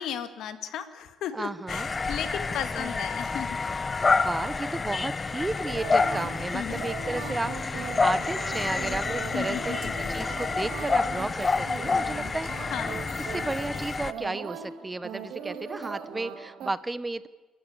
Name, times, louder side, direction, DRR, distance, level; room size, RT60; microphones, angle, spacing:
voice 1, 0.0-3.6 6.5-6.9 9.3-9.9 12.7-13.0, left 9 dB, 75° left, 10 dB, 2.0 m, -35 dB
voice 2, 1.3-2.2 2.7-2.9 4.2-12.7 13.2-17.3, right 2 dB, 15° right, 16 dB, 0.8 m, -33 dB
sound 1, 1.7-14.1, left 4 dB, 25° left, 0.9 m, -28 dB
sound 2, 5.6-16.7, right 7 dB, 75° right, 2.6 m, -39 dB
28.5 x 14.5 x 8.5 m, 1.2 s
cardioid pair, 115°, 0 cm